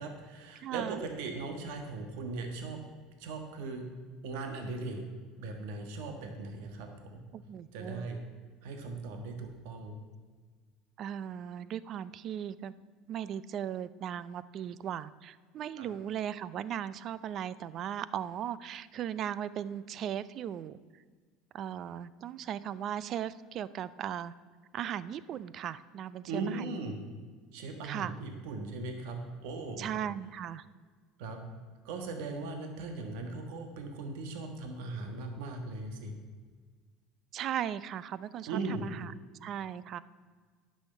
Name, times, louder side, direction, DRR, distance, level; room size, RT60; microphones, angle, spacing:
voice 1, 0.0-2.8 3.2-3.9 4.2-5.0 5.4-7.2 7.7-8.2 8.6-10.0 15.8-15.9 26.3-27.0 27.5-29.9 31.2-31.4 31.8-36.1 38.5-38.9, right 3 dB, 75° right, 4 dB, 1.4 m, -39 dB
voice 2, 0.6-1.0 7.3-8.1 11.0-12.7 13.1-20.8 21.5-24.3 24.7-26.7 27.8-28.1 29.8-30.6 37.3-39.1 39.4-40.0, right 10 dB, 40° right, 17 dB, 0.4 m, -37 dB
10.5 x 6.4 x 6.7 m, 1.5 s
supercardioid pair, 135°, 0 cm